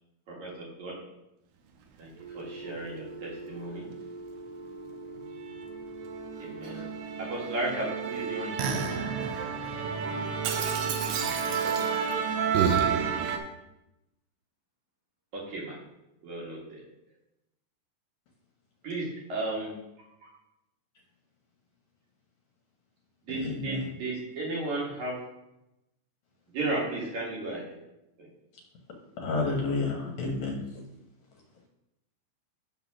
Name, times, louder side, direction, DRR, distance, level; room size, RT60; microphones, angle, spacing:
voice 1, 0.3-1.0 2.0-3.9 6.4-6.9 7.2-9.0 15.3-15.8 16.2-16.8 18.8-20.3 23.2-25.2 26.5-27.6 28.2-28.3, right 2 dB, 60° right, -4 dB, 3.0 m, -35 dB
Musical instrument, 2.2-13.4, right 6 dB, 80° right, 2.4 m, -31 dB
voice 2, 11.0-13.1, left 1 dB, 15° left, -7 dB, 1.8 m, -47 dB
voice 3, 23.4-23.8 29.2-30.6, left 3 dB, 65° left, -1 dB, 2.2 m, -30 dB
8.1 x 3.9 x 6.1 m, 0.90 s
omnidirectional pair, 3.9 m